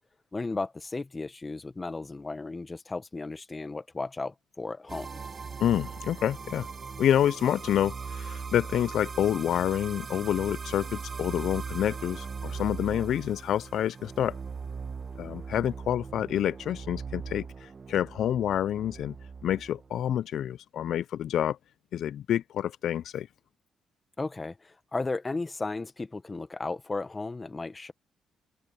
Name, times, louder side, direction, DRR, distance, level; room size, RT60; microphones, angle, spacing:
voice 1, 0.3-5.2 12.9-13.0 24.2-27.9, left 3 dB, 25° left, 0.8 m, -35 dB
sound 1, 4.9-20.0, right 5 dB, 40° right, 1.1 m, -39 dB
voice 2, 5.6-6.7 7.0-14.4 15.2-19.1 19.4-21.6 21.9-23.3, left 10 dB, 70° left, 0.3 m, -28 dB
cardioid pair, 90°, 0 cm